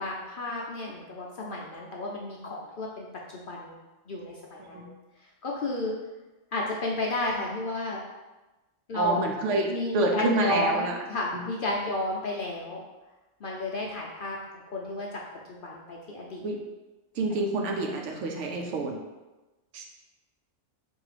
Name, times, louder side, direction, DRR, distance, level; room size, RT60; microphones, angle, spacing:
voice 1, 0.0-3.1 3.3-3.8 4.1-4.9 5.4-6.0 6.5-8.0 8.9-9.3 9.7-12.8 13.4-14.4 14.7-15.2 15.5-16.5, left 2 dB, 55° left, -2 dB, 0.6 m, -32 dB
voice 2, 8.9-10.9 11.3-11.4 16.4-16.6 17.2-19.0 19.7-19.8, right 2 dB, 70° right, 2 dB, 1.0 m, -27 dB
3.9 x 2.7 x 4.8 m, 1.1 s
omnidirectional pair, 1.3 m